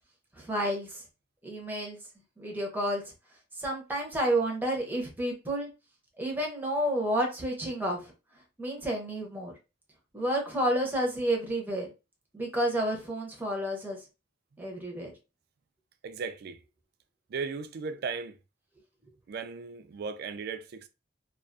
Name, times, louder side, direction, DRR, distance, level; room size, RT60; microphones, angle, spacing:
voice 1, 0.4-1.0 1.4-2.0 2.4-3.0 3.6-5.7 6.2-8.1 8.6-9.5 10.1-11.9 12.3-14.0 14.6-15.1, right 1 dB, 10° right, 0.7 m, -30 dB
voice 2, 16.0-16.6 17.3-18.4 19.3-20.9, right 5 dB, 55° right, 0.3 m, -36 dB
2.4 x 2.3 x 2.5 m
head